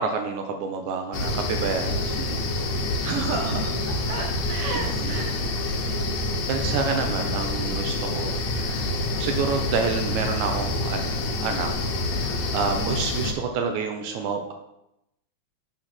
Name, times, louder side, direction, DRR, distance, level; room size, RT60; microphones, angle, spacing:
voice 1, 0.0-2.4 5.0-5.2 6.5-8.9 9.2-11.7 12.0-14.5, right 5 dB, 85° right, 5 dB, 2.1 m, -28 dB
sound 1, 1.1-13.3, left 2 dB, 75° left, 2.3 m, -27 dB
voice 2, 3.0-3.8 4.1-5.4 5.6-5.8, right 4 dB, 70° right, 2 dB, 1.5 m, -31 dB
8.1 x 4.0 x 6.0 m, 0.87 s
omnidirectional pair, 3.4 m